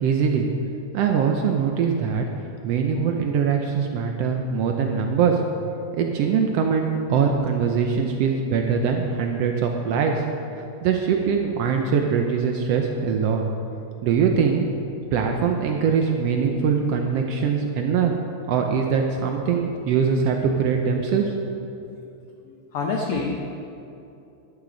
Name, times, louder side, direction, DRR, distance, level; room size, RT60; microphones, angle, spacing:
voice 1, 0.0-0.5 0.9-2.2 2.6-5.4 5.9-10.2 10.8-13.4 14.0-14.7 15.1-18.1 18.5-21.3, right 6 dB, 90° right, 3 dB, 1.3 m, -22 dB
voice 2, 22.4-23.4, left 4 dB, 90° left, 1 dB, 1.2 m, -27 dB
13.0 x 11.5 x 3.9 m, 2.7 s
omnidirectional pair, 3.7 m